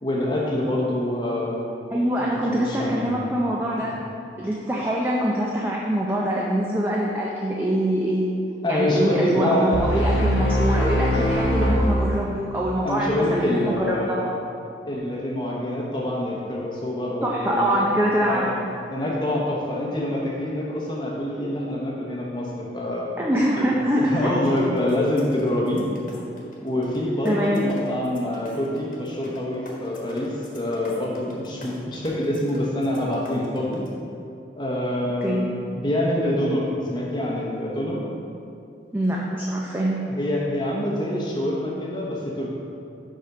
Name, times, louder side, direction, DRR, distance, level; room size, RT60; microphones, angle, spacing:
voice 1, 0.0-1.6 2.2-3.0 3.8-3.9 8.6-9.8 12.8-14.3 14.8-17.8 18.2-18.5 18.9-23.1 23.6-23.7 24.0-25.9 26.6-33.8 34.6-38.0 40.1-42.5, left 1 dB, 25° left, -4 dB, 0.9 m, -26 dB
voice 2, 1.9-3.9 4.4-8.4 8.7-14.3 17.2-18.5 23.2-24.7 27.2-27.7 35.2-35.5 38.9-40.0, equal, 10° right, -3 dB, 0.5 m, -24 dB
sound 1, 9.7-12.7, equal, 90° left, 1.1 m, -22 dB
sound 2, 24.4-27.0 27.2-33.9, left 1 dB, 50° left, 1.3 m, -42 dB
5.5 x 5.0 x 6.0 m, 2.6 s
head